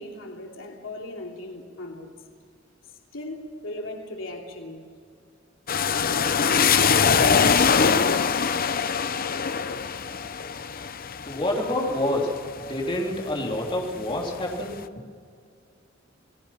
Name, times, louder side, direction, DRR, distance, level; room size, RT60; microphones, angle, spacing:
voice 1, 0.0-2.1 3.1-4.8, left 1 dB, 85° left, 1 dB, 3.1 m, -37 dB
sound 1, 5.7-13.3 13.8-14.6, left 6 dB, 50° left, 0.8 m, -23 dB
voice 2, 11.3-14.8, left 1 dB, 25° left, -1 dB, 3.4 m, -27 dB
29.0 x 19.5 x 5.8 m, 2.2 s
head